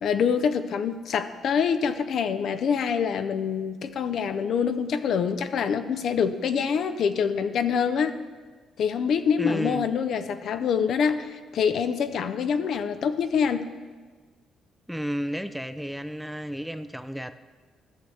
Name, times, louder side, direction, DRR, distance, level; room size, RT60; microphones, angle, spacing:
voice 1, 0.0-8.1 8.8-13.7, left 6 dB, 65° left, 10 dB, 0.5 m, -25 dB
voice 2, 9.4-9.9 14.9-17.4, equal, ahead, 11 dB, 0.4 m, -32 dB
14.0 x 6.3 x 3.3 m, 1.4 s
cardioid pair, 90°, 0 cm